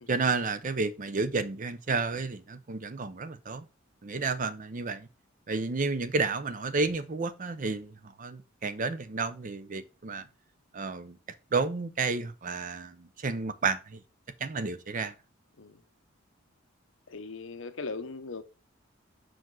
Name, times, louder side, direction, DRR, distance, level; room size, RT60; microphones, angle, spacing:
voice 1, 0.1-3.7 4.0-5.1 5.5-10.2 10.7-11.2 11.5-14.0 14.4-15.1, right 4 dB, 40° right, 0.6 m, -31 dB
voice 2, 17.1-18.4, left 3 dB, 85° left, 0.9 m, -40 dB
6.0 x 5.0 x 3.7 m
head